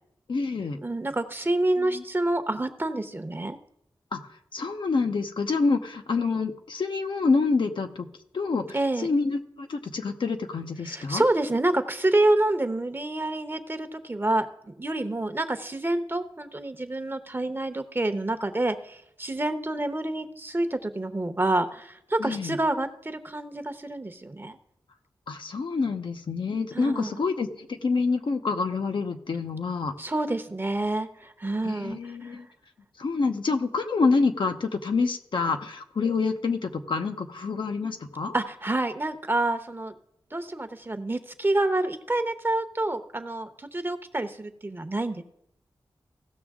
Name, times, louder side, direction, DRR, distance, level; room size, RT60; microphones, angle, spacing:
voice 1, 0.3-0.8 1.8-2.0 4.1-4.2 4.5-8.1 8.3-8.6 9.0-11.3 22.2-22.6 25.3-29.9 31.6-32.5 33.0-38.3, left 4 dB, 70° left, 5 dB, 0.8 m, -27 dB
voice 2, 0.8-3.6 8.7-9.1 10.9-24.6 26.7-27.1 30.0-32.4 38.3-39.9 40.3-45.2, right 2 dB, 25° right, 9 dB, 0.8 m, -28 dB
16.0 x 6.1 x 3.6 m, 0.74 s
wide cardioid pair, 70°, 9 cm